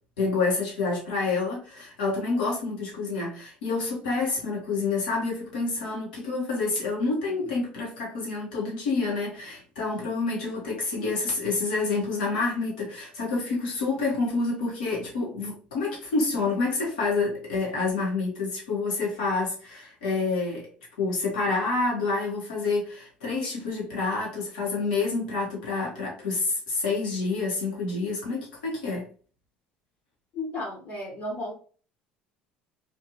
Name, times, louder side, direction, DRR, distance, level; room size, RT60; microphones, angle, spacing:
voice 1, 0.2-20.7 21.0-29.1, left 3 dB, 85° left, 1.4 m, -28 dB
voice 2, 30.3-31.5, left 1 dB, 55° left, 1.1 m, -33 dB
3.2 x 2.8 x 2.9 m
hypercardioid pair, 75°, 5 cm